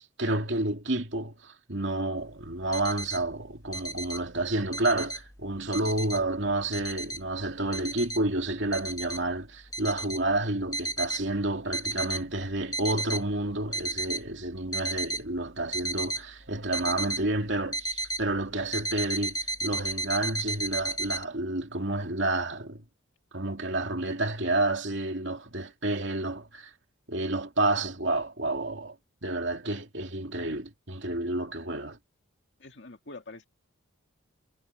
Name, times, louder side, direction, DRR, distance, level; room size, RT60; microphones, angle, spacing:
voice 1, 0.0-22.8 23.3-26.7 27.1-28.9 29.2-32.0, right 2 dB, 55° right, 2.8 m, -30 dB
sound 1, 2.5-3.2 3.7-4.2 4.5-5.2 5.7-6.2 6.7-7.2 7.7-8.2 8.7-9.2 9.7-10.2 10.7-11.2 11.7-12.2 12.6-13.2 13.7-14.2 14.7-15.2 15.7-16.2 16.7-17.2 17.7-18.2 18.7-21.2, right 1 dB, 15° left, 1.7 m, -33 dB
voice 2, 32.6-33.5, left 2 dB, 55° left, 2.3 m, -45 dB
head